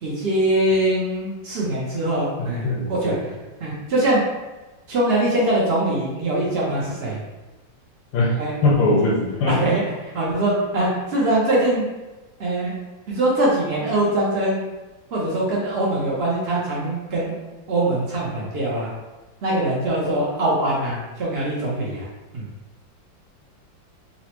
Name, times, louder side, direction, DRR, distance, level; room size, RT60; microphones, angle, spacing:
voice 1, 0.0-3.1 3.6-4.2 4.9-7.2 8.4-8.5 9.5-11.9 12.4-12.7 13.1-14.6 15.1-17.4 17.7-18.9 19.4-22.1 22.3-22.5, right 1 dB, 85° right, -5 dB, 0.5 m, -22 dB
voice 2, 2.4-3.2 8.1-9.6, left 2 dB, 85° left, -4 dB, 1.3 m, -21 dB
3.9 x 2.0 x 2.9 m, 1.1 s
omnidirectional pair, 2.0 m